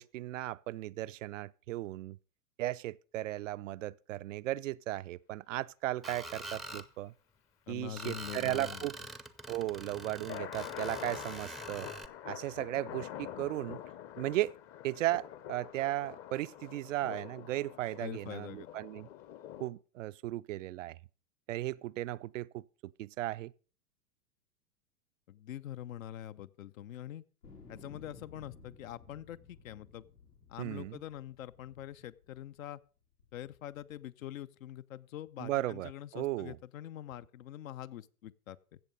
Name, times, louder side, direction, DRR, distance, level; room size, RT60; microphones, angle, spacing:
voice 1, 0.0-2.2 2.6-7.1 7.7-9.0 9.5-11.9 12.3-13.8 14.2-14.5 14.8-19.1 19.6-21.0 21.5-23.5 30.6-31.0 35.4-36.6, right 15 dB, 55° right, 0.5 m, -36 dB
Screech, 6.0-6.9 8.0-12.1, right 1 dB, ahead, 0.6 m, -45 dB
voice 2, 7.7-8.9 18.0-18.7 25.3-27.2 27.7-30.1 30.5-32.8 33.3-38.8, left 12 dB, 60° left, 0.8 m, -44 dB
sound 1, 9.5-19.7, left 11 dB, 30° left, 0.9 m, -46 dB
sound 2, 27.4-32.6 33.2-34.0, left 4 dB, 85° left, 3.4 m, -57 dB
15.5 x 7.1 x 5.2 m
figure-of-eight pair, 100°, 46 cm